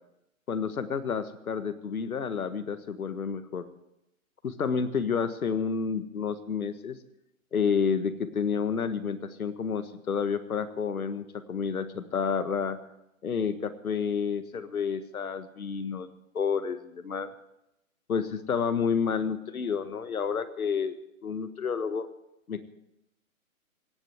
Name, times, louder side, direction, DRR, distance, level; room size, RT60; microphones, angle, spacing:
voice 1, 0.5-3.6 4.4-7.0 7.5-12.8 13.2-16.1 16.3-17.3 18.1-20.9 21.2-22.1 22.5-22.6, left 6 dB, 80° left, 12 dB, 1.7 m, -30 dB
17.5 x 7.9 x 9.3 m, 0.85 s
hypercardioid pair, 150°, 42 cm